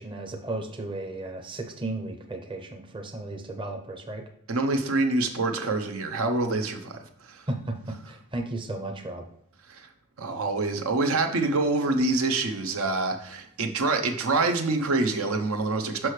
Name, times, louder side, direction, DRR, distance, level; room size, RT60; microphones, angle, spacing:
voice 1, 0.0-4.2 7.5-9.2, right 2 dB, 25° right, 5 dB, 0.6 m, -34 dB
voice 2, 4.5-7.4 9.7-9.9 10.2-16.1, right 3 dB, 80° right, 5 dB, 0.8 m, -26 dB
6.1 x 5.6 x 3.2 m, 0.72 s
head